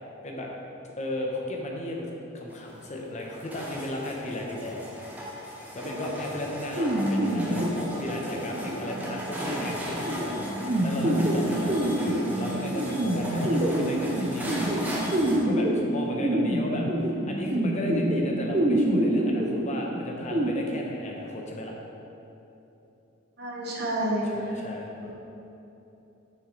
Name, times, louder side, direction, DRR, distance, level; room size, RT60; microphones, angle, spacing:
voice 1, 1.0-2.1 2.3-4.8 5.7-14.5 15.4-21.7 24.3-24.9, left 1 dB, 35° left, -1 dB, 0.9 m, -35 dB
sound 1, 2.5-15.4, equal, 10° right, 1.0 m, -37 dB
sound 2, 6.8-20.5, right 1 dB, 30° right, 0.5 m, -27 dB
voice 2, 23.4-24.6 25.0-25.1, right 1 dB, 55° right, -2 dB, 1.1 m, -30 dB
6.9 x 6.0 x 3.9 m, 3.0 s
head